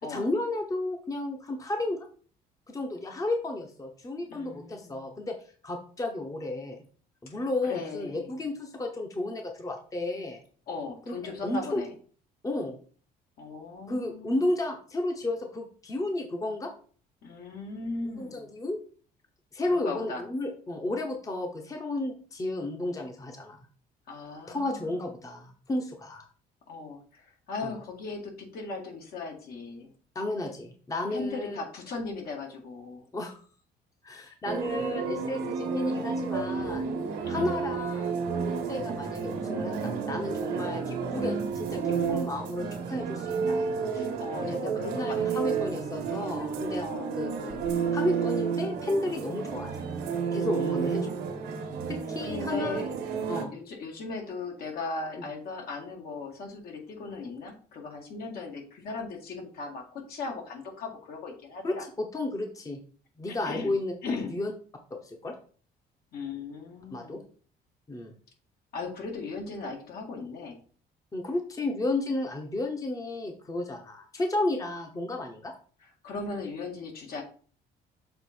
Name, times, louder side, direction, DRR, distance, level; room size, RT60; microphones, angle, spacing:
voice 1, 0.0-2.1 2.7-5.4 5.6-6.8 7.2-10.4 11.1-11.2 11.4-11.8 12.4-12.8 13.9-16.7 18.1-18.8 19.5-23.6 24.5-26.2 27.6-27.7 30.1-31.6 33.1-33.4 34.0-36.9 37.3-43.6 44.4-46.9 47.2-47.6 47.9-50.0 50.3-51.1 51.9-52.8 53.3-53.5 61.6-62.8 63.2-63.9 64.3-64.5 65.0-65.4 66.9-67.2 67.9-68.1 71.1-75.5, left 2 dB, 20° left, 3 dB, 0.9 m, -32 dB
voice 2, 4.3-5.0 7.3-8.3 10.7-11.9 13.4-14.4 17.2-18.5 19.7-20.2 24.1-25.0 26.7-29.9 31.1-33.1 37.2-37.5 43.9-45.4 46.8-47.1 50.5-51.8 52.2-52.8 53.5-61.9 63.3-64.3 66.1-67.2 68.7-70.6 76.0-77.2, left 3 dB, 65° left, 2 dB, 1.9 m, -38 dB
sound 1, 34.4-53.4, right 6 dB, 90° right, 1.2 m, -31 dB
6.7 x 3.7 x 4.4 m, 0.43 s
cardioid pair, 110°, 17 cm